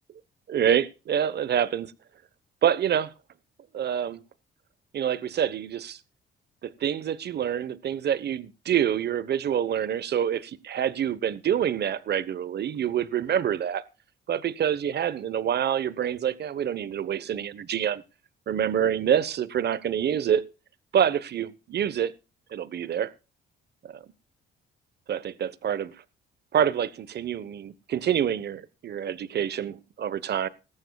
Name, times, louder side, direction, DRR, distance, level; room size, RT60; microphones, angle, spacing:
voice 1, 0.5-1.9 2.6-3.1 3.7-4.2 4.9-6.0 6.6-13.8 14.3-18.0 18.5-20.5 20.9-22.1 22.5-23.1 23.8-24.0 25.1-25.9 26.5-30.5, right 9 dB, 55° right, 1.1 m, -26 dB
18.0 x 14.5 x 2.4 m
cardioid pair, 90°, 20 cm